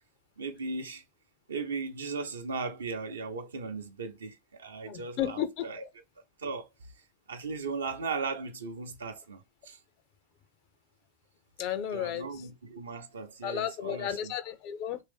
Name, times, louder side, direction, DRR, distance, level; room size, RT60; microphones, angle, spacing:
voice 1, 0.4-1.0 1.5-5.8 6.4-6.7 7.3-9.8 11.9-14.3, right 4 dB, 70° right, 0.7 m, -37 dB
voice 2, 4.9-5.7 11.6-12.3 13.4-15.0, left 10 dB, 40° left, 0.5 m, -33 dB
3.1 x 2.6 x 3.5 m
figure-of-eight pair, 90°, 0 cm